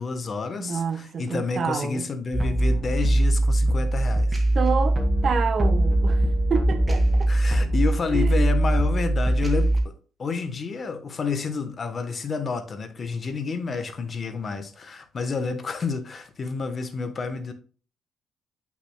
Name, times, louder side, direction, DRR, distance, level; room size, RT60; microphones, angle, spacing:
voice 1, 0.0-4.4 7.3-9.9 10.2-17.5, left 5 dB, 40° left, 1.0 m, -29 dB
voice 2, 0.6-2.0 4.5-6.2 6.5-7.3 8.1-8.5, right 6 dB, 50° right, 0.9 m, -28 dB
sound 1, 2.3-9.8, right 1 dB, 15° right, 1.8 m, -21 dB
8.2 x 5.9 x 2.2 m
cardioid pair, 90°, 0 cm